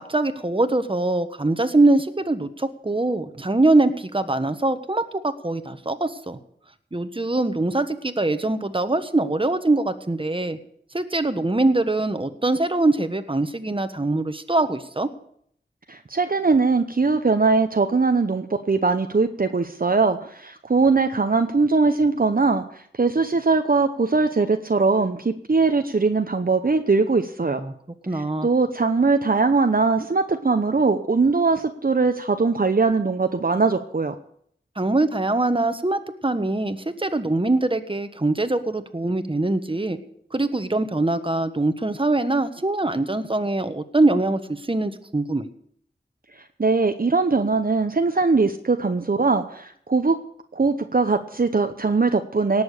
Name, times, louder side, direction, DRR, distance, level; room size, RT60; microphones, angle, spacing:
voice 1, 0.0-6.4 6.9-10.6 10.9-15.1 27.5-27.7 28.1-28.5 34.8-40.0 40.3-45.5, right 2 dB, 25° right, 10 dB, 1.3 m, -23 dB
voice 2, 15.9-27.6 28.1-34.1 46.6-50.2 50.5-52.6, right 4 dB, 50° right, 7 dB, 0.8 m, -21 dB
18.0 x 7.0 x 8.3 m, 0.66 s
wide cardioid pair, 50°, 20 cm